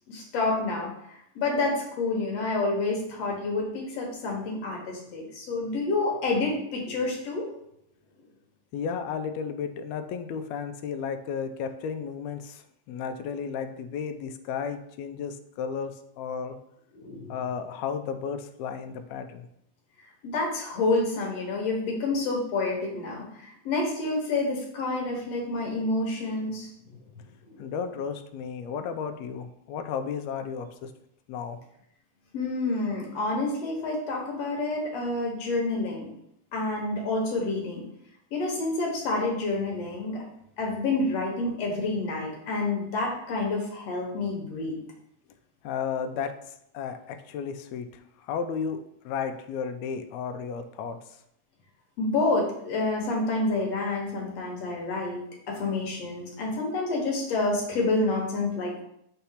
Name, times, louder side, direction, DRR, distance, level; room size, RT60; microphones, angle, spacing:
voice 1, 0.1-0.9 1.4-7.5 16.9-17.3 20.2-27.7 32.3-36.1 36.5-37.8 38.3-40.2 40.6-44.8 52.0-55.2 55.5-58.8, left 2 dB, 60° left, -1 dB, 2.2 m, -28 dB
voice 2, 8.7-16.6 17.3-19.5 27.6-30.9 31.3-31.6 45.6-46.3 46.7-51.0, left 6 dB, 80° left, 8 dB, 1.6 m, -33 dB
5.6 x 3.4 x 5.7 m, 0.75 s
omnidirectional pair, 3.5 m